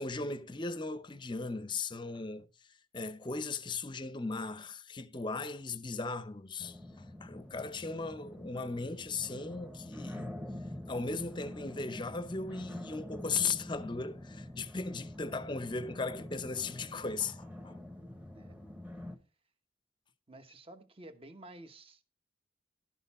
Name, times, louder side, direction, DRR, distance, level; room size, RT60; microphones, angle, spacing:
voice 1, 0.0-10.4 10.9-17.8, left 4 dB, 25° left, 0.7 m, -37 dB
sound 1, 6.6-19.2, left 1 dB, 5° right, 1.1 m, -46 dB
voice 2, 20.3-22.0, right 1 dB, 30° right, 1.1 m, -52 dB
12.0 x 6.7 x 4.2 m
head